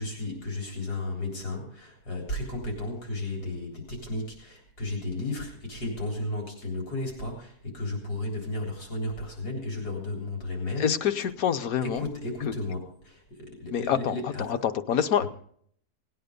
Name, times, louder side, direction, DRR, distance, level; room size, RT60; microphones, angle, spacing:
voice 1, 0.0-10.9 11.8-14.4 15.2-15.3, left 2 dB, 85° left, 0 dB, 4.3 m, -34 dB
voice 2, 10.8-12.1 13.7-14.2 14.5-15.3, left 8 dB, 65° left, 10 dB, 1.2 m, -26 dB
18.0 x 9.3 x 5.2 m, 0.63 s
omnidirectional pair, 1.6 m